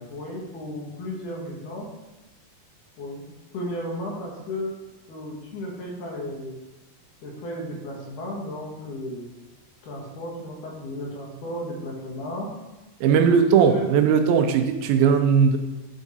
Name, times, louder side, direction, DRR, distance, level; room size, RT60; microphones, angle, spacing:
voice 1, 0.1-1.9 3.0-3.3 3.5-4.8 5.1-6.6 7.2-9.3 9.8-12.5 13.7-13.9, left 1 dB, 65° left, -2 dB, 2.6 m, -34 dB
voice 2, 13.0-15.6, right 6 dB, 85° right, 6 dB, 2.4 m, -18 dB
10.0 x 3.6 x 4.0 m, 1.1 s
omnidirectional pair, 4.2 m